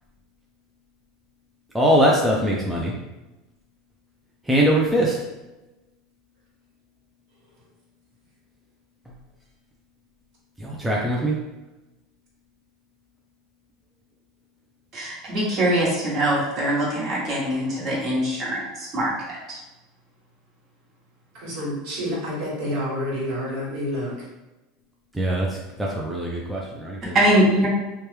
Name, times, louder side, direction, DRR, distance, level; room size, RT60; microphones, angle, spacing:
voice 1, 1.7-2.9 4.4-5.2 10.6-11.4 25.1-27.2, equal, 5° right, -4 dB, 0.4 m, -22 dB
voice 2, 14.9-19.6 27.0-27.7, right 1 dB, 35° right, -5 dB, 1.2 m, -23 dB
voice 3, 21.3-24.1, equal, 60° right, -5 dB, 1.4 m, -28 dB
2.9 x 2.2 x 3.2 m, 1.0 s
supercardioid pair, 125°, 0 cm